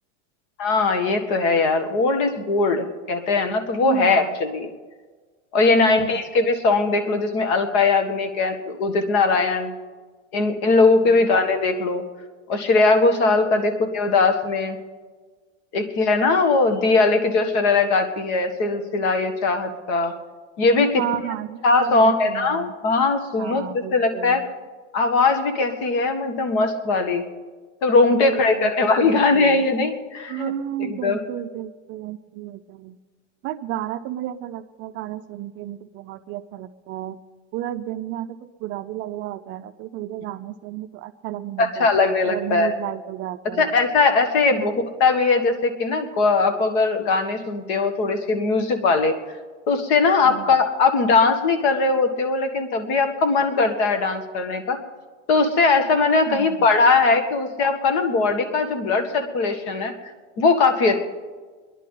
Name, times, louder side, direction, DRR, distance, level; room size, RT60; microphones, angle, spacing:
voice 1, 0.6-4.7 5.5-9.7 10.3-12.0 12.5-14.8 15.7-20.1 20.6-21.0 21.6-23.6 23.9-24.4 24.9-27.2 27.8-30.5 30.8-31.2 41.6-42.8 43.6-44.7 45.0-49.1 49.7-54.8 55.3-59.9 60.4-61.0, left 3 dB, 60° left, 7 dB, 1.7 m, -20 dB
voice 2, 3.8-4.4 5.7-6.2 11.0-11.2 13.5-13.7 21.0-22.7 23.4-24.5 28.1-29.6 30.3-33.0 33.4-37.2 37.5-43.8 44.6-44.7 50.2-50.6 56.3-56.7, right 12 dB, 35° right, 9 dB, 0.4 m, -32 dB
26.0 x 10.5 x 3.8 m, 1.4 s
supercardioid pair, 140°, 36 cm